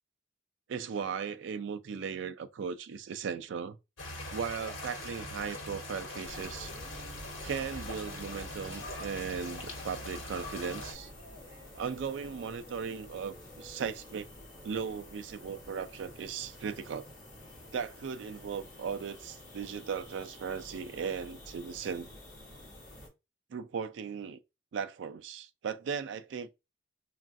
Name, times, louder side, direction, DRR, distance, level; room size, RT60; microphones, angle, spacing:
voice 1, 0.7-3.8 4.3-6.7 7.4-11.1 11.8-14.3 14.6-17.1 17.7-22.1 23.5-24.4 24.7-26.5, right 6 dB, 70° right, 0.3 m, -37 dB
sound 1, 4.0-10.9, left 2 dB, 85° left, 1.0 m, -42 dB
sound 2, 6.2-23.1, left 1 dB, 45° left, 1.1 m, -50 dB
sound 3, 6.4-14.7 15.8-15.9, equal, 40° right, 1.2 m, -57 dB
3.2 x 2.4 x 2.5 m
head